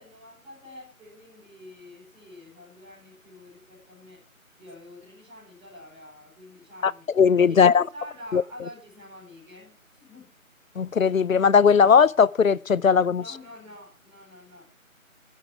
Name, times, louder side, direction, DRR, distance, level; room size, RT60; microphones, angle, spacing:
voice 1, 0.0-4.2 4.6-7.1 7.5-10.3 13.1-14.6, left 1 dB, 5° right, 4.6 m, -47 dB
voice 2, 6.8-7.8 8.3-8.4 10.8-13.2, left 6 dB, 70° left, 0.6 m, -18 dB
14.0 x 9.9 x 4.7 m
figure-of-eight pair, 165°, 42 cm